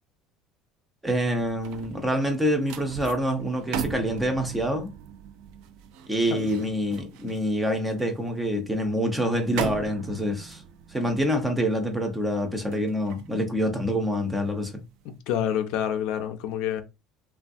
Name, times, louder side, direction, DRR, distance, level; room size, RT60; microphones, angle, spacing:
voice 1, 1.0-4.9 6.1-10.6 10.9-14.8, equal, 5° right, 0.5 m, -26 dB
sound 1, 1.2-14.5 14.9-15.1, right 7 dB, 65° right, 0.4 m, -39 dB
voice 2, 6.3-6.7 15.0-16.8, left 9 dB, 60° left, 0.5 m, -28 dB
3.3 x 2.2 x 2.6 m
cardioid pair, 175°, 0 cm